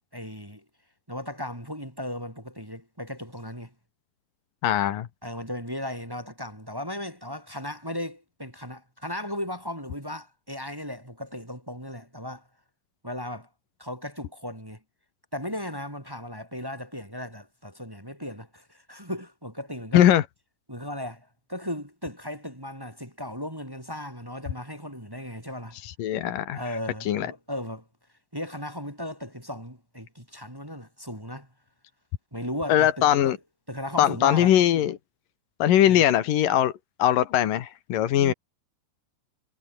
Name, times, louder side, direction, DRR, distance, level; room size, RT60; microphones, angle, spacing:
voice 1, 0.1-0.6 1.1-3.7 5.2-12.4 13.0-13.5 13.8-14.8 15.3-20.1 20.7-25.8 26.5-27.8 28.3-31.5 32.3-33.1 33.7-34.5 35.8-36.0 38.1-38.3, left 1 dB, 5° right, 3.5 m, -36 dB
voice 2, 4.6-5.1 19.9-20.2 25.8-26.6 27.1-27.3 32.7-33.4 34.0-35.0 35.6-36.7 37.0-38.3, left 11 dB, 85° left, 3.3 m, -21 dB
omnidirectional pair, 3.8 m